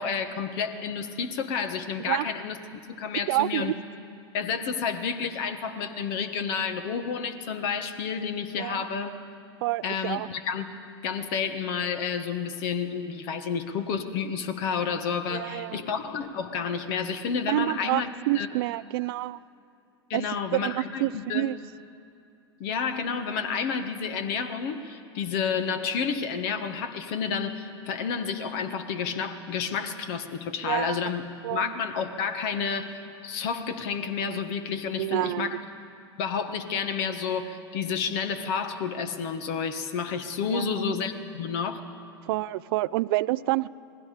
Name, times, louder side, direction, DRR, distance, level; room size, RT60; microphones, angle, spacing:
voice 1, 0.0-3.7 4.3-9.2 9.8-10.7 11.0-18.5 20.1-21.5 22.6-35.6 36.2-41.8, left 6 dB, 55° left, 8 dB, 1.5 m, -30 dB
voice 2, 3.3-3.7 8.6-8.9 9.6-10.3 15.3-15.8 17.5-19.4 20.1-20.2 20.5-21.6 30.6-31.0 31.4-31.7 35.0-35.5 40.5-41.0 42.3-43.7, right 18 dB, 60° right, 19 dB, 0.5 m, -28 dB
28.0 x 19.0 x 5.1 m, 2.6 s
hypercardioid pair, 95°, 14 cm